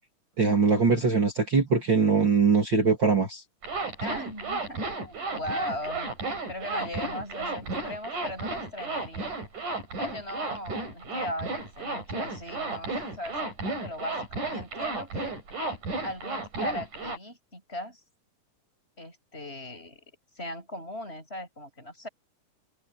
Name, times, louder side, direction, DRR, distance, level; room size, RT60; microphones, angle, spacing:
voice 1, 0.4-3.4, right 4 dB, 35° right, 3.6 m, -22 dB
Zipper (clothing), 3.6-17.2, right 3 dB, 70° right, 8.1 m, -33 dB
voice 2, 4.0-6.1 6.5-9.3 10.0-15.3 16.0-18.0 19.0-20.0 20.3-22.1, left 1 dB, 15° left, 8.2 m, -38 dB
omnidirectional pair, 3.7 m